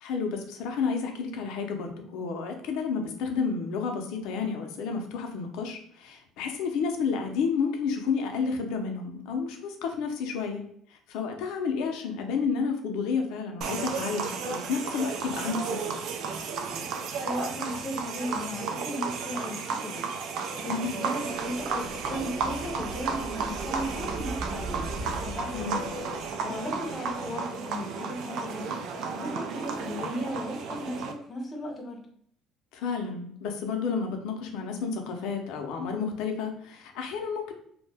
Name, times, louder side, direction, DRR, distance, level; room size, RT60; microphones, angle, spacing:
voice 1, 0.0-10.6 10.9-15.9 20.7-20.9 25.5-25.8 32.7-37.5, left 5 dB, 65° left, 3 dB, 0.5 m, -31 dB
sound 1, 13.6-31.1, right 5 dB, 55° right, 0.3 m, -33 dB
voice 2, 17.2-20.1 20.6-24.9 25.2-25.9 26.4-32.1, left 1 dB, 20° left, 1 dB, 0.6 m, -36 dB
sound 2, 21.4-26.6 26.9-27.0, right 1 dB, 25° right, 1.0 m, -40 dB
2.6 x 2.1 x 3.3 m, 0.64 s
cardioid pair, 165°, 0 cm